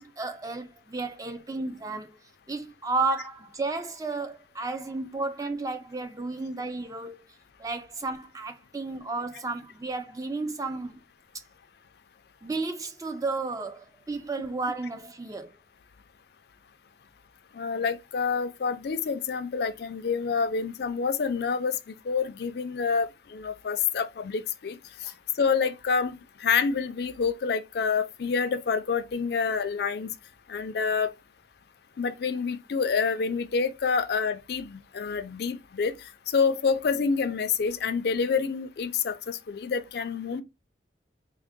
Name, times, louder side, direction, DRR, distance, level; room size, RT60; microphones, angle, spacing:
voice 1, 0.0-2.2 2.5-7.2 7.6-11.0 12.4-15.5 25.0-25.2, right 3 dB, 20° right, 0.4 m, -33 dB
voice 2, 17.5-24.8 25.4-30.1 30.5-31.1 32.0-35.9 36.3-40.4, left 5 dB, 55° left, 0.4 m, -27 dB
3.6 x 2.0 x 3.6 m
head